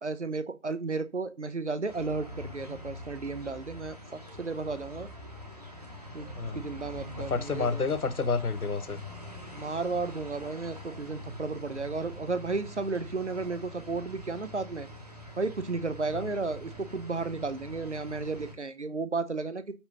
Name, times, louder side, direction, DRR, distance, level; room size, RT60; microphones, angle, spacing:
voice 1, 0.0-5.1 6.1-6.3 6.5-7.9 9.5-14.9 15.4-19.6, right 3 dB, 55° right, 0.7 m, -33 dB
sound 1, 1.9-18.5, equal, 30° right, 0.9 m, -44 dB
voice 2, 7.2-9.0 16.1-16.2, left 4 dB, 85° left, 0.8 m, -29 dB
7.0 x 2.9 x 5.3 m
figure-of-eight pair, 165°, 43 cm